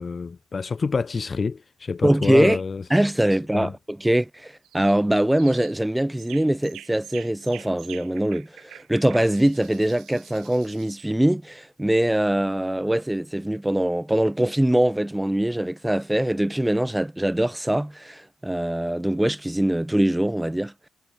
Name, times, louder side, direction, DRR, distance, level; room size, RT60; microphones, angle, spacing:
voice 1, 0.0-2.8 3.5-3.7, left 4 dB, 35° left, 1.1 m, -27 dB
voice 2, 2.0-2.6 2.9-20.9, right 1 dB, 5° right, 2.3 m, -23 dB
sound 1, 4.6-5.0 5.4-5.8 6.2-11.1, right 13 dB, 80° right, 4.8 m, -46 dB
cardioid pair, 90°, 0 cm